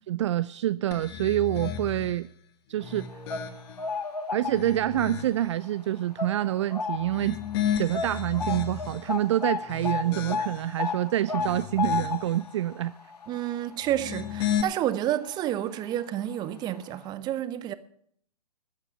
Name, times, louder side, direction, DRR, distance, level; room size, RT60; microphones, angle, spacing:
voice 1, 0.1-2.3 2.7-3.1 4.3-7.4 7.8-12.9, right 13 dB, 50° right, 0.4 m, -27 dB
sound 1, 0.9-2.2 2.7-3.9 4.4-5.5 7.0-9.1 9.6-10.8 11.2-12.4 13.8-14.6, left 9 dB, 40° left, 1.8 m, -34 dB
sound 2, 3.0-5.0 5.4-5.6 6.2-7.3 7.5-7.6 7.9-15.0 15.3-15.5 16.3-16.4 16.8-16.9, left 5 dB, 90° left, 1.9 m, -33 dB
voice 2, 13.3-17.7, right 12 dB, 20° right, 0.8 m, -30 dB
13.5 x 8.3 x 8.6 m
figure-of-eight pair, 120°, 20 cm